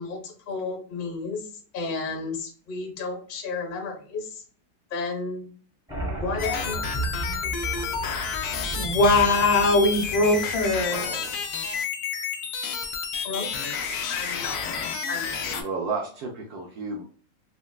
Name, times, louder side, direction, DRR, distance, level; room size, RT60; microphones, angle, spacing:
voice 1, 0.0-4.4 4.9-5.5 6.2-6.8 13.2-13.8 14.1-14.6 15.1-15.3, left 4 dB, 40° left, 1 dB, 0.8 m, -32 dB
sound 1, 5.9-11.1, right 2 dB, 5° right, 0.5 m, -34 dB
sound 2, 6.4-15.6, left 6 dB, 90° left, 0.8 m, -30 dB
voice 2, 8.8-11.1, left 2 dB, 75° left, 4 dB, 1.2 m, -21 dB
voice 3, 10.8-11.4 15.5-17.0, right 4 dB, 70° right, 1 dB, 0.9 m, -33 dB
4.2 x 2.1 x 2.3 m, 0.42 s
omnidirectional pair, 2.2 m